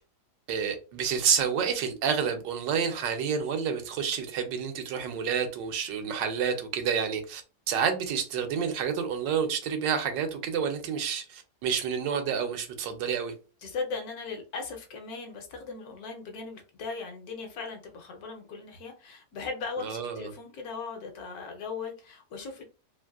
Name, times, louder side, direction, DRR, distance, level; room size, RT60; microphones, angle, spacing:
voice 1, 0.5-7.4 7.7-13.3 19.8-20.3, right 7 dB, 85° right, 1.3 m, -29 dB
voice 2, 13.6-22.6, left 4 dB, 65° left, 1.0 m, -38 dB
3.1 x 2.5 x 2.3 m
omnidirectional pair, 1.9 m